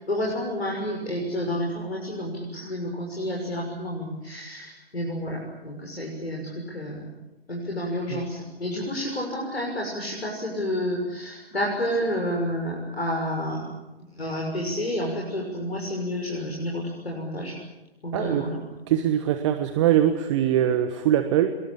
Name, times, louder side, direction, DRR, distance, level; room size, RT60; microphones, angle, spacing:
voice 1, 0.0-7.0 7.5-13.7 14.1-17.6 18.0-18.6, equal, 80° left, -1 dB, 6.5 m, -30 dB
voice 2, 18.1-18.4 18.9-21.5, right 11 dB, 30° right, 9 dB, 1.3 m, -22 dB
26.5 x 21.5 x 8.7 m, 1.1 s
figure-of-eight pair, 130°, 31 cm